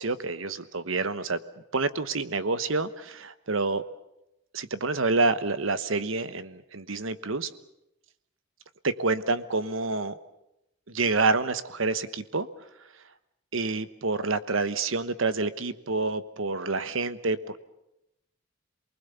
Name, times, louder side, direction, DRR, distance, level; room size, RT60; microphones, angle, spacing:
voice 1, 0.0-1.4 1.7-3.8 4.5-7.5 8.8-10.1 10.9-12.5 13.5-17.6, right 3 dB, 75° right, 14 dB, 1.1 m, -28 dB
28.0 x 20.5 x 7.0 m, 0.86 s
head